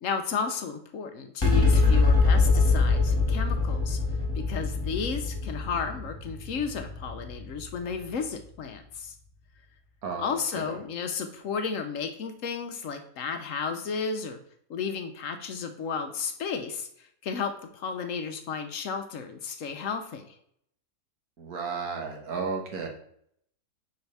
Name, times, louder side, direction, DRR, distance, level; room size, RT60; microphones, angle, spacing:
voice 1, 0.0-4.0 4.4-9.1 10.1-14.4 14.7-20.3, left 5 dB, 65° left, 6 dB, 1.0 m, -33 dB
sound 1, 1.4-8.1, left 3 dB, 20° left, 1.8 m, -24 dB
voice 2, 10.0-10.7 21.4-22.9, right 5 dB, 70° right, 1 dB, 1.7 m, -33 dB
4.9 x 4.5 x 5.4 m, 0.67 s
omnidirectional pair, 1.6 m